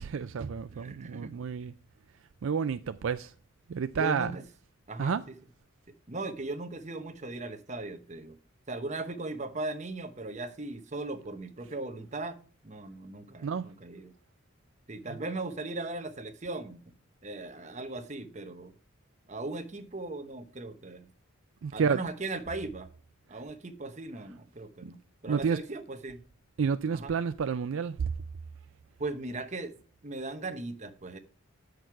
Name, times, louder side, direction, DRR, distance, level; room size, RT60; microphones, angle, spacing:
voice 1, 0.0-1.7 2.4-3.3 3.7-4.3 5.0-5.2 13.4-13.7 21.6-22.0 24.8-24.9 25.3-25.6 26.6-28.1, right 6 dB, 65° right, 0.4 m, -30 dB
voice 2, 0.7-1.4 2.8-2.9 3.9-4.4 4.9-5.2 6.1-8.4 8.7-14.1 14.9-16.9 17.2-18.7 19.3-21.1 21.7-22.9 23.3-26.2 26.9-27.1 29.0-29.7 30.0-31.2, right 2 dB, 35° right, 1.0 m, -38 dB
9.2 x 6.5 x 4.6 m
head